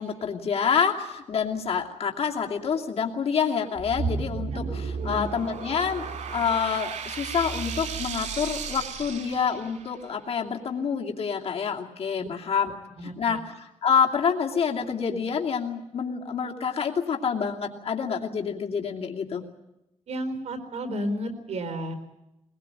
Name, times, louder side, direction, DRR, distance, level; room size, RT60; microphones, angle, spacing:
voice 1, 0.0-12.7 13.0-19.4, left 6 dB, 60° left, 0 dB, 2.7 m, -27 dB
sound 1, 3.7-10.0, right 5 dB, 90° right, 3.4 m, -33 dB
voice 2, 4.9-5.2 12.2-12.3 13.0-13.4 20.1-21.9, equal, 65° right, 8 dB, 4.4 m, -32 dB
21.5 x 21.0 x 8.9 m, 0.89 s
wide cardioid pair, 135°, 12 cm